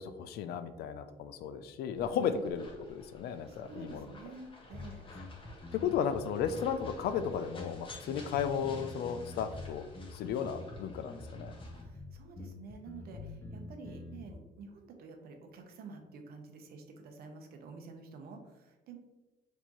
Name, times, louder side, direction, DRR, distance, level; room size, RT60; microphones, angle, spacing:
voice 1, 0.0-4.1 5.7-11.5, left 7 dB, 70° left, 10 dB, 0.4 m, -34 dB
sound 1, 2.0-11.8, left 2 dB, 30° left, 1.0 m, -54 dB
voice 2, 3.5-5.0 5.8-6.1 11.7-19.0, right 4 dB, 65° right, 4 dB, 0.7 m, -49 dB
sound 2, 4.7-14.3, left 2 dB, 15° left, 0.5 m, -46 dB
4.4 x 2.7 x 2.9 m, 1.1 s
cardioid pair, 110°, 17 cm